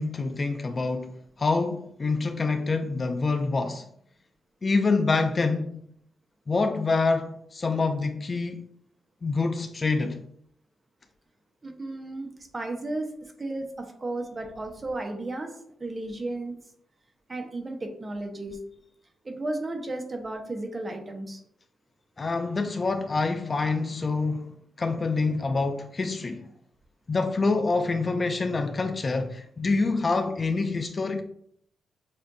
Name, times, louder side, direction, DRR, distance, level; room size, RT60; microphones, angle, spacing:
voice 1, 0.0-3.9 4.6-5.8 6.5-8.6 9.2-10.2 22.2-24.5 24.8-26.5 27.1-31.2, left 3 dB, 35° left, 0.4 m, -26 dB
voice 2, 11.6-15.5 15.8-16.6 17.3-18.6 19.2-21.4, right 2 dB, 30° right, 0.9 m, -34 dB
7.0 x 2.6 x 2.6 m
cardioid pair, 100°, 0 cm